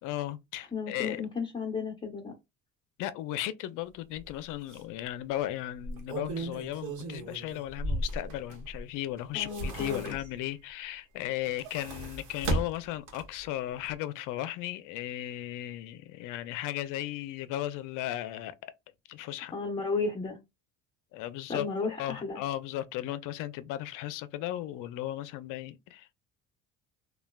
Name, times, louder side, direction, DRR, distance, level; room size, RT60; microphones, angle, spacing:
voice 1, 0.0-1.2 3.0-18.6 19.1-19.5 21.1-21.7 22.0-26.2, left 13 dB, 70° left, 0.5 m, -36 dB
voice 2, 0.7-2.3 9.3-10.1 19.5-20.4 21.5-22.4, left 4 dB, 15° left, 0.9 m, -33 dB
sound 1, 4.2-4.3 4.7-4.8 5.7-8.8 9.2-10.5 11.3-13.5 13.8-13.9, right 1 dB, 65° right, 1.1 m, -35 dB
3.2 x 2.3 x 2.2 m
cardioid pair, 115°, 33 cm